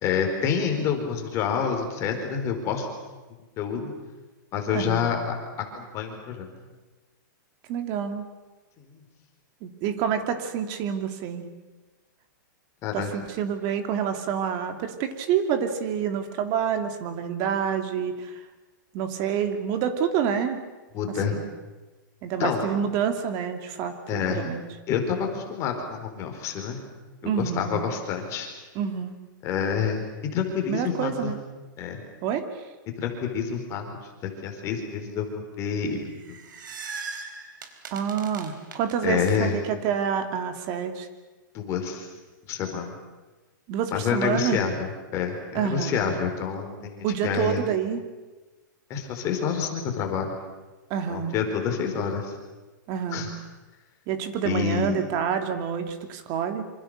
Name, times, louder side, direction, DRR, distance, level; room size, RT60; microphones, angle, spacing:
voice 1, 0.0-2.9 3.6-3.9 4.5-5.2 5.7-6.5 8.9-9.0 12.8-13.1 20.9-21.4 22.4-22.7 24.1-24.5 24.9-26.8 27.2-28.5 29.4-30.0 30.3-31.3 31.8-32.0 33.0-33.8 34.2-36.4 39.0-39.5 41.5-42.1 42.5-42.9 43.9-47.6 48.9-50.3 51.1-52.3 53.1-53.3 54.4-55.0, left 7 dB, 25° left, 3 dB, 4.4 m, -28 dB
voice 2, 4.7-5.0 7.7-8.2 9.6-11.5 12.9-18.4 18.9-20.6 21.3-21.4 22.2-24.6 27.2-27.8 28.7-29.2 30.7-31.4 32.2-32.6 37.9-41.1 43.7-44.6 45.5-46.0 47.0-48.0 50.9-51.4 52.9-53.3 54.1-56.6, right 8 dB, 35° right, 7 dB, 2.9 m, -28 dB
sound 1, 36.0-39.3, right 4 dB, 80° right, 4.2 m, -39 dB
27.0 x 26.0 x 6.7 m, 1.2 s
supercardioid pair, 160°, 11 cm